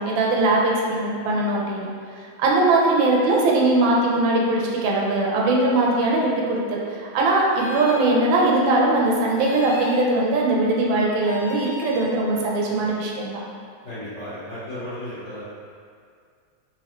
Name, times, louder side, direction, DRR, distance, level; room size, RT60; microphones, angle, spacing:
voice 1, 0.0-1.9 2.4-13.4, right 2 dB, 80° right, -3 dB, 1.3 m, -20 dB
sound 1, 7.5-8.0 9.4-10.0 11.2-12.1, left 2 dB, 80° left, 1.4 m, -36 dB
voice 2, 13.8-15.4, left 1 dB, 60° left, -12 dB, 0.7 m, -34 dB
4.1 x 2.6 x 3.0 m, 2.2 s
omnidirectional pair, 2.2 m